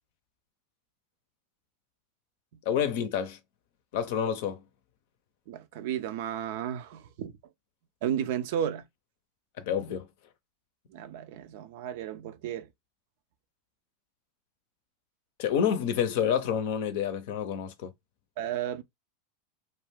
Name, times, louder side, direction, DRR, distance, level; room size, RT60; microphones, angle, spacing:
voice 1, 2.7-3.4 3.9-4.6 9.6-10.1 15.4-17.9, left 8 dB, 65° left, 0.5 m, -28 dB
voice 2, 5.5-7.3 8.0-8.9 10.9-12.7 18.4-18.8, right 10 dB, 65° right, 0.4 m, -33 dB
2.4 x 2.2 x 3.3 m
hypercardioid pair, 95°, 0 cm